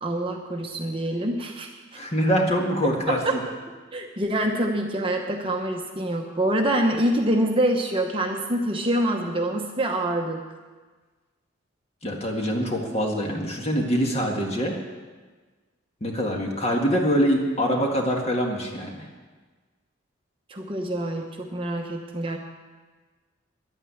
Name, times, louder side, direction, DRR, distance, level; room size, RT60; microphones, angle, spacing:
voice 1, 0.0-1.7 2.8-3.4 3.9-10.4 20.5-22.4, right 1 dB, 25° right, 2 dB, 1.0 m, -25 dB
voice 2, 1.9-3.4 12.0-14.8 16.0-19.0, equal, 30° left, 1 dB, 1.8 m, -24 dB
11.0 x 9.1 x 8.6 m, 1.4 s
head